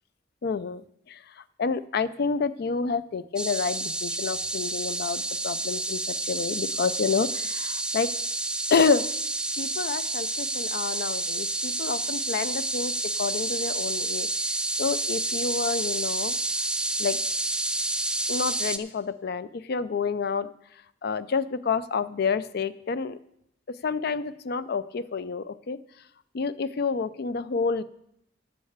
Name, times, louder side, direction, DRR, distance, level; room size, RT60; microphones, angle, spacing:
voice 1, 0.4-1.2 1.6-8.1 8.7-9.0 9.6-12.9 13.2-14.3 14.8-16.3 17.0-17.2 18.3-20.5 21.0-23.2 23.8-25.8 26.3-27.8, left 5 dB, 55° left, 15 dB, 0.4 m, -28 dB
sound 1, 3.4-18.8, right 2 dB, 5° right, 0.4 m, -29 dB
8.7 x 6.6 x 8.0 m, 0.75 s
head